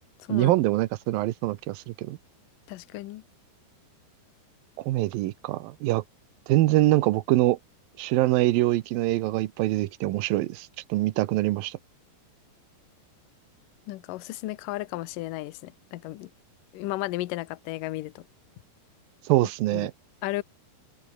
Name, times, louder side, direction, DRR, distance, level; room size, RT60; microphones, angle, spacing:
voice 1, 0.3-2.2 4.9-6.0 6.5-7.6 8.0-11.8 19.3-19.9, right 17 dB, 75° right, 2.3 m, -24 dB
voice 2, 2.7-3.2 13.9-16.3 16.7-18.2 19.4-19.9 20.2-20.4, left 17 dB, 75° left, 2.1 m, -34 dB
omnidirectional pair, 4.9 m